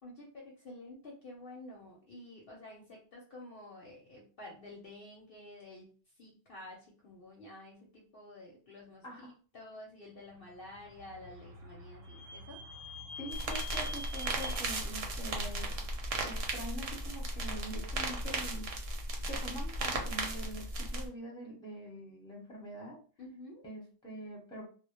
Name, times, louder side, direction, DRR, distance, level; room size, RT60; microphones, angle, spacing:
voice 1, 0.0-12.6 23.2-23.6, left 1 dB, 55° left, -2 dB, 0.7 m, -50 dB
Vehicle / Squeak, 10.7-16.3, left 1 dB, 90° right, 0.9 m, -47 dB
voice 2, 13.2-15.7 16.2-18.9 19.3-23.0 23.6-24.7, equal, 5° left, -2 dB, 0.7 m, -44 dB
sound 1, 13.3-21.1, right 2 dB, 60° right, 0.8 m, -36 dB
2.1 x 2.0 x 2.9 m, 0.39 s
omnidirectional pair, 1.3 m